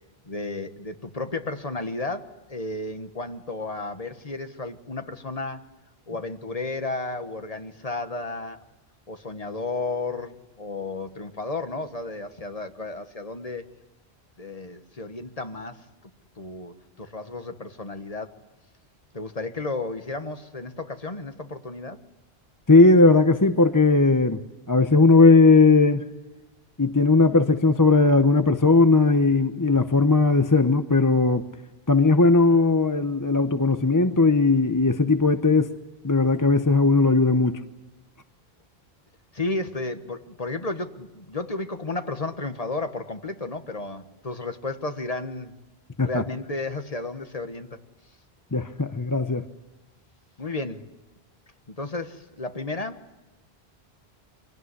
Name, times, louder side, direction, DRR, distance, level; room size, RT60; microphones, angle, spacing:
voice 1, 0.2-5.7 6.1-8.6 9.1-13.6 14.4-18.4 19.1-22.0 39.3-45.6 46.0-47.8 50.4-50.9 51.7-53.1, left 3 dB, 35° left, 1.5 m, -33 dB
voice 2, 22.7-24.4 24.7-26.0 26.8-31.4 31.9-35.7 36.0-37.6 46.0-46.2 48.5-49.4, left 3 dB, 20° left, 0.8 m, -18 dB
25.0 x 18.0 x 9.8 m
omnidirectional pair, 1.1 m